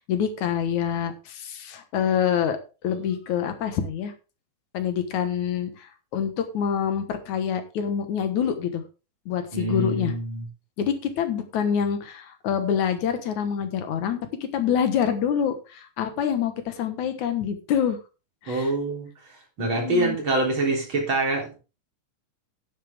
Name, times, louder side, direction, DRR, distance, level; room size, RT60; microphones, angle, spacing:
voice 1, 0.1-2.6 2.8-4.1 4.7-8.8 9.3-10.1 10.8-14.2 14.5-18.0 18.4-18.7 19.6-20.2, left 8 dB, 75° left, 8 dB, 2.7 m, -26 dB
voice 2, 9.5-10.5 18.5-21.6, right 2 dB, 40° right, 0 dB, 4.4 m, -26 dB
11.0 x 10.5 x 3.5 m, 0.31 s
omnidirectional pair, 3.5 m